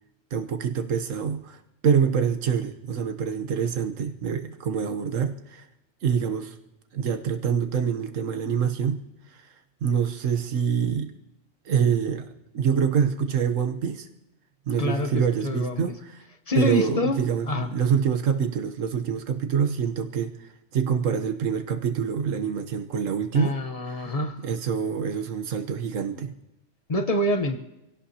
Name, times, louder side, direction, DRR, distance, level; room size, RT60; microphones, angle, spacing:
voice 1, 0.3-5.7 6.0-6.5 6.9-9.0 9.3-9.5 9.8-11.1 11.6-14.1 14.7-16.2 16.5-23.6 23.9-24.1 24.4-26.3, right 7 dB, 80° right, 7 dB, 1.4 m, -26 dB
voice 2, 14.8-15.8 16.5-17.2 17.5-17.7 23.3-24.4 26.9-27.6, left 1 dB, 30° left, 7 dB, 1.0 m, -26 dB
27.0 x 17.0 x 2.9 m, 0.91 s
omnidirectional pair, 1.3 m